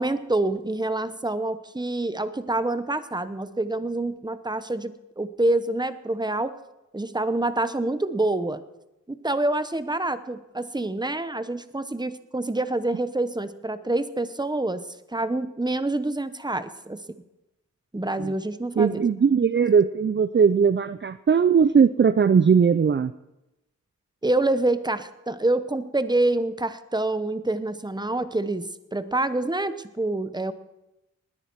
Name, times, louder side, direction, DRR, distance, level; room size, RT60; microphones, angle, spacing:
voice 1, 0.0-6.5 6.9-8.6 9.1-14.8 15.1-17.0 17.9-19.0 24.2-30.5, right 2 dB, 15° right, 12 dB, 0.9 m, -26 dB
voice 2, 18.8-23.1, right 6 dB, 40° right, 14 dB, 0.4 m, -19 dB
20.0 x 9.8 x 4.6 m, 0.94 s
wide cardioid pair, 55°, 31 cm